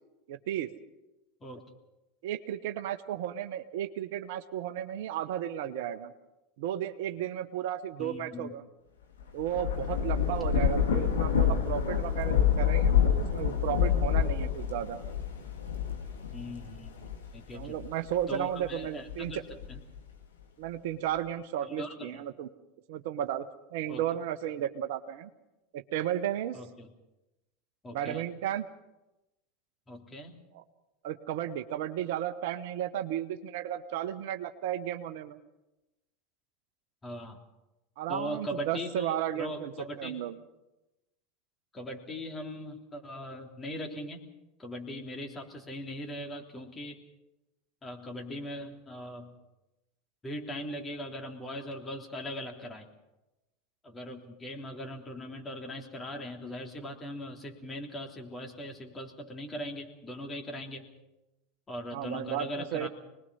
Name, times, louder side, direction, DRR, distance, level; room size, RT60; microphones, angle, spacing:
voice 1, 0.3-0.7 2.2-6.1 6.6-8.6 9.3-15.0 17.5-19.4 20.6-22.5 22.9-23.5 23.7-25.3 25.7-26.6 27.9-28.7 30.5-30.6 31.0-35.4 38.0-39.7 40.0-40.4 61.9-62.9, right 11 dB, 65° right, 10 dB, 1.0 m, -34 dB
voice 2, 8.0-8.5 16.3-17.0 17.3-17.8 18.3-19.4 19.7-19.8 21.6-22.2 23.9-24.0 26.5-26.9 27.8-28.3 29.9-30.3 37.0-37.4 38.1-40.2 41.7-44.2 44.6-47.0 47.8-49.3 50.2-52.9 53.8-60.9 61.7-62.9, equal, 20° left, 2 dB, 3.3 m, -40 dB
Thunder / Rain, 9.2-18.1 18.7-20.0, left 8 dB, 80° left, 2.5 m, -28 dB
25.5 x 20.0 x 5.6 m, 0.98 s
hypercardioid pair, 85°, 0 cm